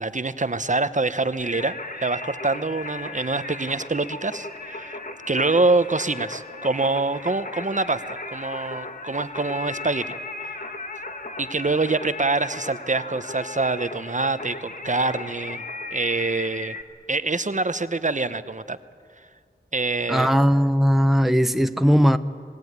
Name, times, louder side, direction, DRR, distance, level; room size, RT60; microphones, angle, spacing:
voice 1, 0.0-5.0 5.3-8.0 8.3-10.1 11.4-15.6 15.9-16.8 17.1-18.8 19.7-20.4, right 3 dB, 40° right, 0.9 m, -25 dB
Singing, 1.4-16.8, left 2 dB, 45° left, 1.5 m, -36 dB
voice 2, 20.1-22.2, equal, ahead, 0.7 m, -18 dB
27.0 x 19.0 x 9.5 m
wide cardioid pair, 70°, 19 cm